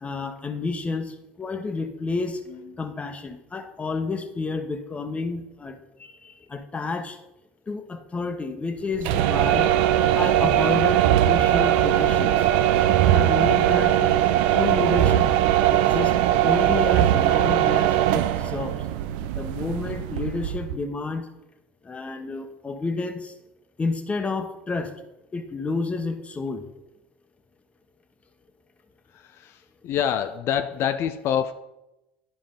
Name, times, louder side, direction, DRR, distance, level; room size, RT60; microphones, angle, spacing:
voice 1, 0.0-2.4 2.8-7.2 7.7-9.7 10.2-12.5 12.7-12.8 13.1-14.2 14.5-15.3 15.7-16.1 16.4-18.8 19.4-21.3 21.8-23.3 23.8-24.9 25.3-26.7, left 3 dB, 20° left, 6 dB, 1.1 m, -30 dB
sound 1, 8.9-20.8, right 12 dB, 65° right, 0.4 m, -20 dB
voice 2, 29.1-31.5, left 9 dB, 50° left, 9 dB, 0.5 m, -26 dB
11.5 x 5.0 x 3.8 m, 0.95 s
figure-of-eight pair, 65°, 6 cm